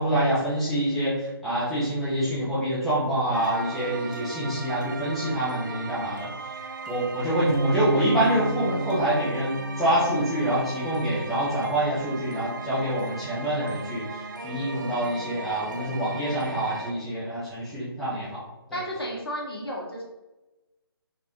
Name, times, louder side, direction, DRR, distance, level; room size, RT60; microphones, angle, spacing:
voice 1, 0.0-6.3 6.9-18.4 18.7-18.8, right 1 dB, ahead, -12 dB, 0.5 m, -26 dB
sound 1, 3.3-16.9, right 3 dB, 50° right, 0.4 m, -38 dB
Bass guitar, 7.5-13.7, right 2 dB, 85° right, 1.1 m, -33 dB
voice 2, 18.7-20.0, equal, 70° left, -2 dB, 1.3 m, -32 dB
4.2 x 2.3 x 2.9 m, 1.1 s
figure-of-eight pair, 150°, 13 cm